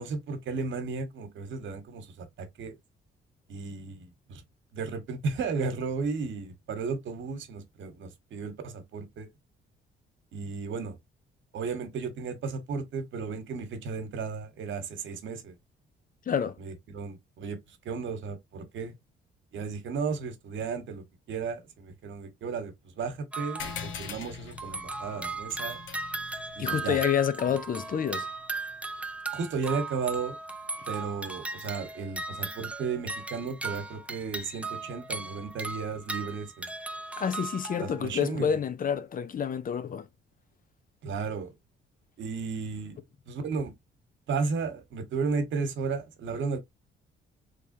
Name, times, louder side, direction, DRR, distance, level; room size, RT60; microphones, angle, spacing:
voice 1, 0.0-2.7 3.5-4.4 4.7-9.3 10.3-10.9 11.5-15.6 16.6-17.6 17.8-18.9 19.5-25.8 26.6-27.0 27.4-27.5 29.3-30.4 30.9-36.7 37.8-38.6 41.0-41.5 42.2-43.0 43.3-43.7 44.3-46.6, right 5 dB, 70° right, 1.2 m, -34 dB
Wind Up Toy, 23.3-24.1 24.5-38.0, right 3 dB, 5° right, 0.5 m, -37 dB
sound 1, 23.6-28.5, left 7 dB, 75° left, 0.9 m, -44 dB
voice 2, 26.6-28.3 37.2-40.1, left 8 dB, 45° left, 0.5 m, -28 dB
3.4 x 3.3 x 2.6 m
cardioid pair, 90°, 20 cm